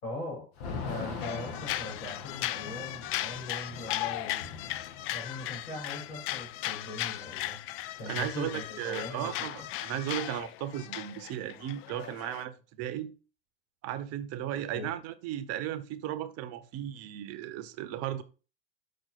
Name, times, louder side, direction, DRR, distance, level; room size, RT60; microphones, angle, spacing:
voice 1, 0.0-4.6 5.1-7.6 7.9-9.7 14.7-14.9, left 2 dB, 80° left, 4.2 m, -41 dB
Thunder / Rain, 0.6-8.4 8.7-8.8 9.1-10.4, left 5 dB, 60° left, 1.4 m, -43 dB
sound 1, 1.2-12.4, left 15 dB, 40° left, 0.4 m, -37 dB
voice 2, 8.1-13.1 13.8-18.2, right 11 dB, 50° right, 0.8 m, -36 dB
6.1 x 4.9 x 4.1 m
hypercardioid pair, 85°, 33 cm